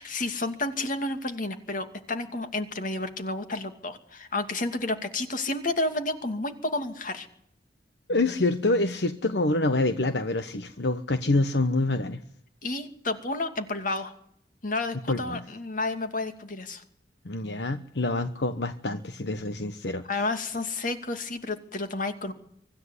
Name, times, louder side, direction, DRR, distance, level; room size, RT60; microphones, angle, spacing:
voice 1, 0.0-7.3 12.6-14.1 14.6-16.8 20.0-22.3, left 2 dB, 50° left, 8 dB, 2.6 m, -31 dB
voice 2, 8.1-12.2 15.1-15.4 17.2-20.0, left 2 dB, 75° left, 9 dB, 1.1 m, -26 dB
25.0 x 13.5 x 9.8 m, 0.71 s
head